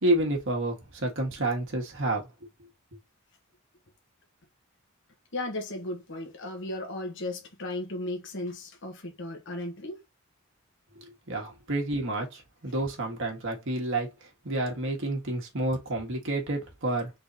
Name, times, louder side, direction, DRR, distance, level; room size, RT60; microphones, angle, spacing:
voice 1, 0.0-2.3 11.3-14.1 14.4-17.1, right 2 dB, 60° right, 1.6 m, -29 dB
voice 2, 5.3-10.0, left 1 dB, 60° left, 1.2 m, -35 dB
4.0 x 3.7 x 2.8 m
head